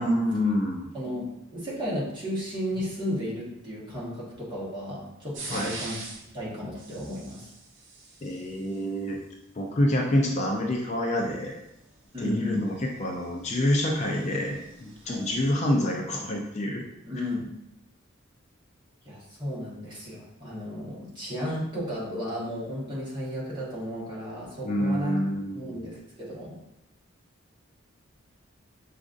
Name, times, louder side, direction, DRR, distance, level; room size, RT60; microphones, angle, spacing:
voice 1, 0.0-0.9 5.5-5.7 8.2-9.2 9.6-11.6 12.2-16.8 24.6-25.8, left 1 dB, 35° left, 0 dB, 0.4 m, -27 dB
voice 2, 0.9-6.1 6.3-7.5 12.1-12.6 15.0-15.3 17.0-17.5 19.0-25.2 25.5-26.6, equal, 25° right, -7 dB, 1.3 m, -34 dB
sound 1, 5.3-6.3 6.7-8.8 11.4-15.5, right 3 dB, 65° right, 0.8 m, -43 dB
6.0 x 2.5 x 2.5 m, 0.87 s
head